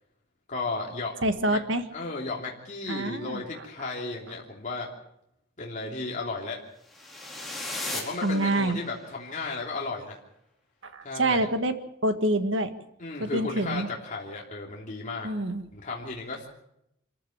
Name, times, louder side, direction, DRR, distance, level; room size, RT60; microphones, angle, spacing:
voice 1, 0.5-1.2 1.5-1.6 1.9-4.9 5.6-6.6 7.9-10.2 11.0-11.5 13.0-15.3 15.7-16.5, left 3 dB, 40° left, -2 dB, 3.1 m, -34 dB
voice 2, 1.2-1.8 2.9-3.4 8.2-8.8 10.8-11.7 12.0-12.7 13.2-13.9 15.2-15.6, right 1 dB, 65° right, 8 dB, 1.8 m, -26 dB
sound 1, 6.9-9.1, left 2 dB, ahead, 4.6 m, -37 dB
26.5 x 15.0 x 7.2 m, 0.81 s
head